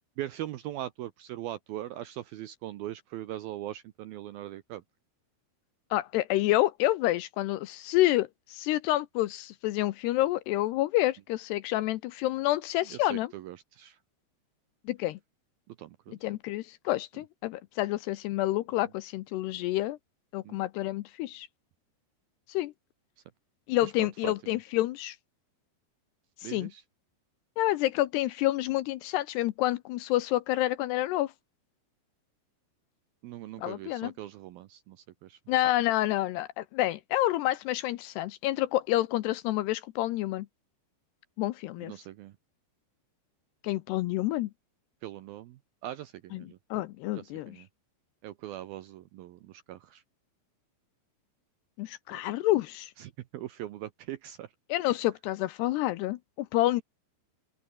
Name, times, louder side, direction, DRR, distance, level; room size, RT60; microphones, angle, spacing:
voice 1, 0.2-4.8 12.9-14.0 15.7-16.2 20.4-20.6 23.8-24.6 26.4-26.8 33.2-35.4 41.8-42.3 45.0-46.6 47.2-47.7 48.2-50.0 53.0-54.5, right 13 dB, 75° right, 2.2 m, -41 dB
voice 2, 5.9-13.3 14.9-15.2 16.2-20.0 20.3-21.5 22.5-22.7 23.7-25.2 26.4-26.7 27.6-31.3 33.6-34.1 35.5-40.5 41.4-41.9 43.6-44.5 46.3-47.6 51.8-52.9 54.7-56.8, left 16 dB, 80° left, 2.6 m, -28 dB
open air
omnidirectional pair, 5.3 m